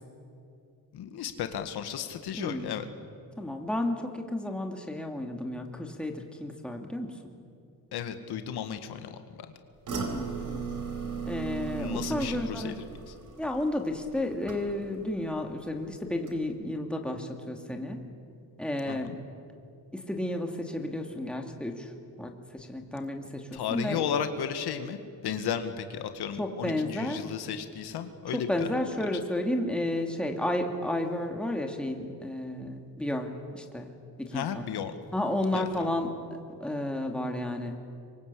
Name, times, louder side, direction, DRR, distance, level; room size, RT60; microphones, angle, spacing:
voice 1, 0.9-2.9 7.9-9.2 11.8-13.1 18.9-19.0 23.5-28.7 34.3-35.0 35.5-35.9, left 8 dB, 85° left, 8 dB, 1.9 m, -34 dB
voice 2, 2.3-2.7 3.4-7.1 9.9-10.7 11.2-12.8 13.4-18.0 18.6-19.1 19.9-21.9 22.2-24.1 26.4-27.2 28.3-33.9 34.2-34.7 35.1-36.1 36.6-37.8, left 1 dB, 5° left, 3 dB, 2.5 m, -32 dB
sound 1, 9.9-15.1 15.4-15.8 16.2-16.3, right 5 dB, 55° right, 4.4 m, -37 dB
26.0 x 23.5 x 8.6 m, 2.4 s
cardioid pair, 140°, 38 cm